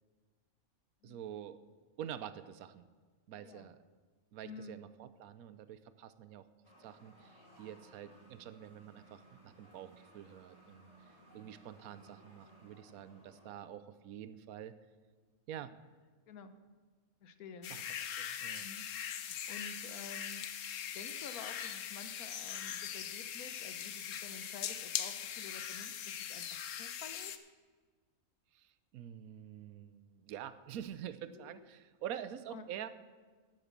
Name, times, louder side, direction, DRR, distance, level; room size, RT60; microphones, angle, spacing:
voice 1, 1.0-1.6 2.0-2.9 3.3-3.8 4.3-6.5 6.8-14.8 15.5-15.7 17.7-17.8 18.2-18.7 28.5-32.9, right 10 dB, 85° right, 13 dB, 1.1 m, -47 dB
voice 2, 3.4-3.7 4.4-4.8 15.6-15.7 16.3-16.5 17.2-17.8 18.6-20.6 20.9-27.3 31.3-31.6 32.5-32.7, left 5 dB, 85° left, 10 dB, 1.3 m, -51 dB
sound 1, 6.6-13.6, right 2 dB, 25° left, 2.9 m, -61 dB
sound 2, 17.6-27.4, left 9 dB, 65° left, 1.0 m, -41 dB
10.5 x 8.0 x 7.3 m, 1.4 s
omnidirectional pair, 1.5 m